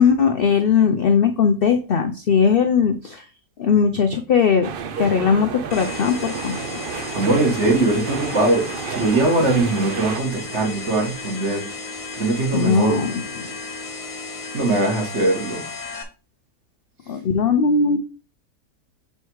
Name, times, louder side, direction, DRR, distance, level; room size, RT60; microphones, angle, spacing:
voice 1, 0.0-3.3 3.6-4.7 5.0-6.7 12.5-13.5 17.1-18.0, left 6 dB, 65° left, 0.5 m, -19 dB
sound 1, 4.6-10.2, right 6 dB, 65° right, 0.5 m, -31 dB
sound 2, 5.7-16.0, left 3 dB, 25° left, 0.9 m, -34 dB
voice 2, 7.1-11.6 12.1-13.0 14.5-15.6, right 2 dB, 45° right, 1.9 m, -21 dB
6.5 x 3.4 x 4.6 m
omnidirectional pair, 1.7 m